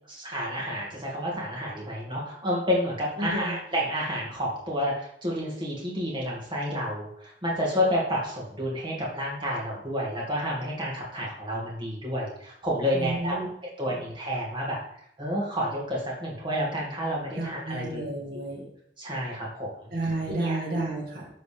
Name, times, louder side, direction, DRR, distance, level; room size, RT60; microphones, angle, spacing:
voice 1, 0.1-13.5 13.8-14.8 15.2-18.0 19.0-20.6, equal, 25° right, -4 dB, 2.0 m, -30 dB
voice 2, 3.2-3.6 12.9-13.5 17.4-18.7 19.9-21.3, right 2 dB, 55° right, -3 dB, 1.9 m, -31 dB
11.0 x 4.0 x 3.4 m, 0.69 s
head